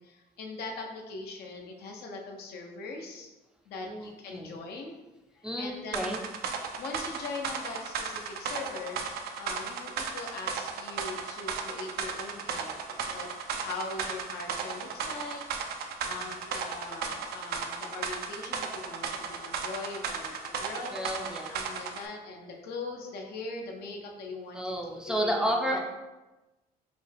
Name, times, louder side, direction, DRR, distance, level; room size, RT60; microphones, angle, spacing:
voice 1, 0.0-3.3 3.7-5.0 5.3-6.2 6.8-9.0 9.4-15.4 16.0-21.0 21.5-24.8 25.0-25.8, left 3 dB, 70° left, 2 dB, 0.8 m, -41 dB
voice 2, 3.8-4.5 5.4-6.2 16.1-16.2 20.9-21.5 24.5-25.8, equal, 5° right, 0 dB, 0.5 m, -31 dB
sound 1, 5.9-22.0, right 5 dB, 70° right, 0.5 m, -35 dB
5.1 x 2.3 x 3.3 m, 1.1 s
cardioid pair, 110°, 17 cm